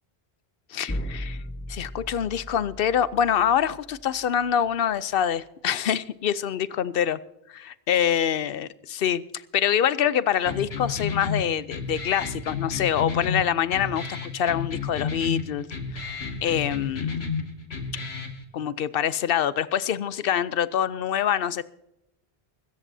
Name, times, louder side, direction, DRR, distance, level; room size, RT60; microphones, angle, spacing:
voice 1, 0.7-1.4 1.7-7.2 7.5-9.2 9.5-15.7 15.9-17.3 18.5-21.6, left 9 dB, 65° left, 0.8 m, -25 dB
sound 1, 0.9-4.7, equal, 15° left, 1.2 m, -37 dB
sound 2, 10.4-18.4, left 5 dB, 85° left, 1.8 m, -32 dB
23.5 x 13.5 x 2.7 m
omnidirectional pair, 1.0 m